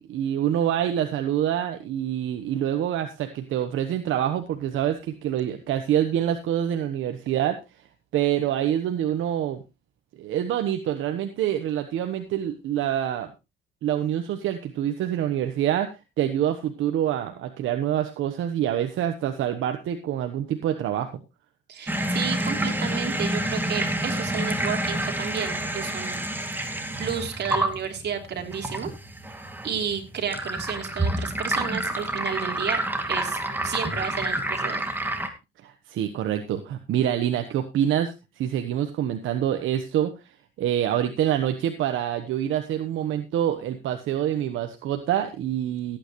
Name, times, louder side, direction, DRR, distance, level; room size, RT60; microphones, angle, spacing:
voice 1, 0.0-7.6 8.1-9.6 10.2-13.3 13.8-15.9 16.2-21.2 35.6-40.1 40.6-46.0, right 10 dB, 80° right, 7 dB, 1.2 m, -26 dB
voice 2, 21.7-26.2 27.0-28.9 29.6-32.8 33.1-34.8, right 7 dB, 60° right, 3 dB, 3.1 m, -32 dB
sound 1, 21.9-35.3, right 1 dB, 10° right, 2.3 m, -28 dB
17.0 x 9.1 x 3.1 m, 0.25 s
cardioid pair, 90°, 20 cm